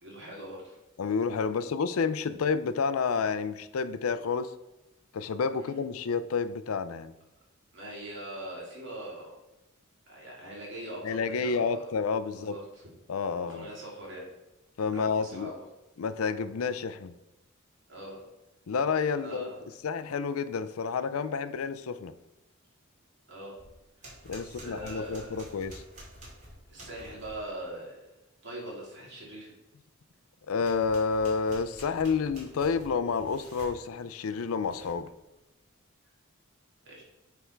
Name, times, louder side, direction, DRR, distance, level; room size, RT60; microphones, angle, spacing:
voice 1, 0.0-0.8 5.6-5.8 7.7-9.3 10.1-11.9 12.3-12.9 13.5-14.3 14.9-15.7 17.9-18.2 19.2-19.6 23.3-23.6 24.0-24.1 24.4-25.4 26.7-28.0 28.4-29.5 36.8-37.0, right 1 dB, 55° right, -4 dB, 2.6 m, -42 dB
voice 2, 1.0-4.5 5.1-7.1 11.0-12.6 13.1-13.7 14.8-15.5 16.0-17.1 18.7-19.5 19.8-22.1 24.2-25.8 30.5-35.1, left 5 dB, 80° left, 13 dB, 0.4 m, -30 dB
sound 1, 23.6-27.5 30.6-33.8 34.5-35.1, right 1 dB, 35° right, 2.4 m, -49 dB
8.1 x 3.5 x 4.5 m, 0.96 s
head